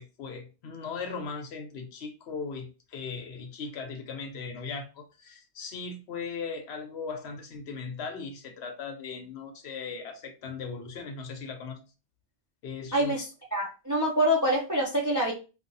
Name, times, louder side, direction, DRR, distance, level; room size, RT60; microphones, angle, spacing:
voice 1, 0.0-11.8 12.6-13.1, left 5 dB, 70° left, 0.9 m, -38 dB
voice 2, 12.9-13.3 13.5-15.3, equal, 30° right, 0.3 m, -25 dB
2.7 x 2.3 x 2.6 m
omnidirectional pair, 1.2 m